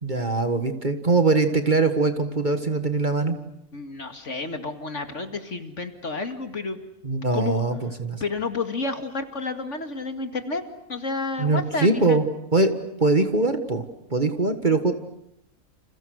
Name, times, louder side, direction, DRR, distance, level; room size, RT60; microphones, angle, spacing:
voice 1, 0.0-3.4 7.0-8.2 11.4-12.2 12.5-12.7 13.0-13.8 14.1-14.9, right 3 dB, 35° right, 8 dB, 1.8 m, -22 dB
voice 2, 3.7-6.8 7.3-7.6 8.2-10.6 10.9-12.2, left 3 dB, 55° left, 7 dB, 2.5 m, -30 dB
30.0 x 28.5 x 6.5 m, 0.78 s
omnidirectional pair, 1.5 m